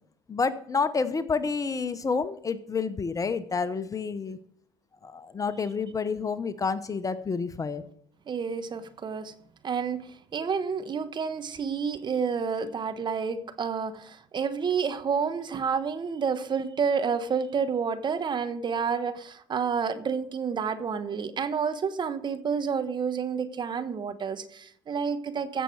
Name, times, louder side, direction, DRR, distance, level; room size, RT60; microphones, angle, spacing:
voice 1, 0.3-4.4 5.0-7.8, left 5 dB, 30° left, 13 dB, 0.9 m, -29 dB
voice 2, 8.3-9.3 9.6-25.6, right 6 dB, 40° right, 10 dB, 1.2 m, -29 dB
15.5 x 6.8 x 4.7 m, 0.66 s
hypercardioid pair, 70°, 12 cm